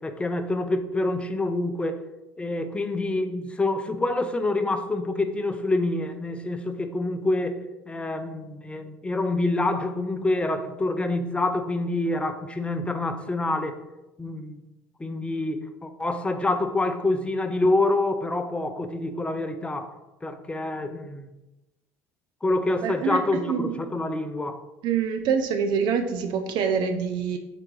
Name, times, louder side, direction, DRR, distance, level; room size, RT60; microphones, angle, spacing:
voice 1, 0.0-2.0 2.4-13.8 14.2-14.6 15.0-21.3 22.4-24.6, left 2 dB, 15° left, 0.4 m, -27 dB
voice 2, 22.8-23.8 24.8-27.4, right 6 dB, 65° right, 0.4 m, -26 dB
3.7 x 3.4 x 3.2 m
hypercardioid pair, 70°, 9 cm